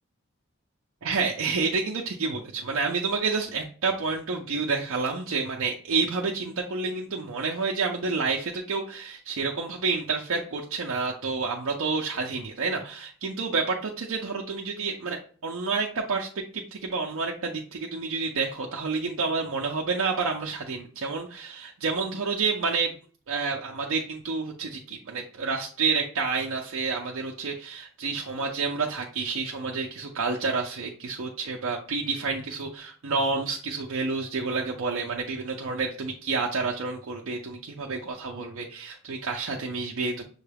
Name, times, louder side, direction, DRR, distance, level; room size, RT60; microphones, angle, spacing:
voice 1, 1.0-22.9 23.3-40.2, right 4 dB, 75° right, -1 dB, 0.5 m, -29 dB
6.3 x 2.3 x 3.3 m, 0.43 s
head